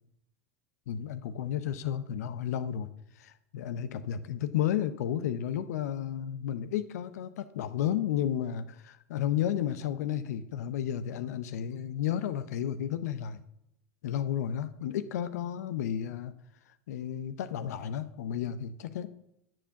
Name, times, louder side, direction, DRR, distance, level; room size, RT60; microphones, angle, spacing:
voice 1, 0.9-2.9 3.2-13.4 14.0-16.3 16.9-19.1, left 10 dB, 80° left, 12 dB, 0.6 m, -32 dB
9.9 x 4.5 x 7.0 m, 0.79 s
hypercardioid pair, 95°, 9 cm